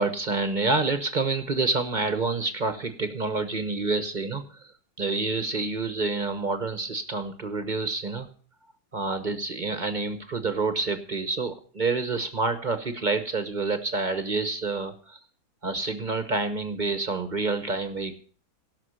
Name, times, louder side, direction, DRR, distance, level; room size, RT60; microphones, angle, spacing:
voice 1, 0.0-4.6 5.0-8.3 8.9-15.2 15.6-18.1, right 3 dB, 40° right, 9 dB, 0.7 m, -28 dB
17.0 x 6.3 x 6.4 m, 0.42 s
omnidirectional pair, 2.1 m